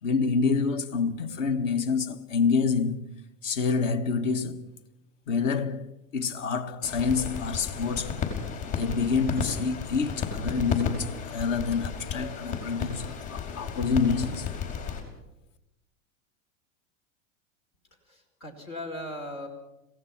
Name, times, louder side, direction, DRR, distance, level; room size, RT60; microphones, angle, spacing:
voice 1, 0.0-3.1 3.4-4.7 5.3-8.2 8.6-14.5, left 5 dB, 70° left, 1.6 m, -27 dB
sound 1, 6.8-15.0, left 6 dB, 50° left, 5.3 m, -33 dB
voice 2, 18.1-19.5, left 1 dB, 90° left, 5.1 m, -38 dB
27.0 x 17.0 x 5.8 m
hypercardioid pair, 95°, 40 cm